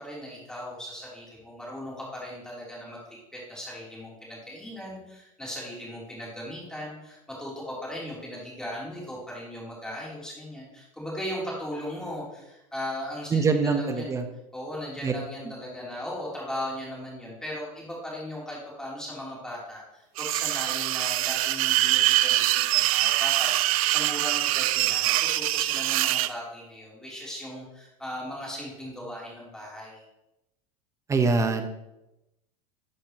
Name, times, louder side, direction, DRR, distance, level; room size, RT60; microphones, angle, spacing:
voice 1, 0.0-14.2 14.5-30.0, left 1 dB, 5° left, -5 dB, 3.3 m, -38 dB
voice 2, 13.3-14.2 15.0-15.1 31.1-31.7, right 4 dB, 15° right, 8 dB, 0.9 m, -23 dB
sound 1, 20.2-26.3, right 16 dB, 80° right, 0.4 m, -24 dB
12.0 x 6.3 x 3.0 m, 0.92 s
supercardioid pair, 130°, 18 cm